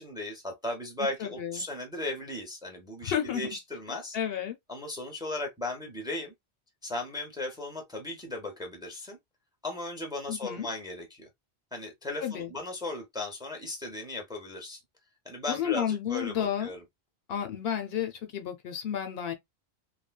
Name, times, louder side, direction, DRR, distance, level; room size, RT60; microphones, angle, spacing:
voice 1, 0.0-4.2 4.7-6.3 6.8-9.2 9.6-11.3 11.7-14.8 15.2-16.8, left 2 dB, 5° right, 0.7 m, -36 dB
voice 2, 1.0-1.6 3.0-3.5 4.1-4.6 10.3-10.7 12.2-12.5 15.5-16.7 17.3-19.3, left 9 dB, 70° left, 0.8 m, -31 dB
3.2 x 2.0 x 2.2 m
omnidirectional pair, 1.1 m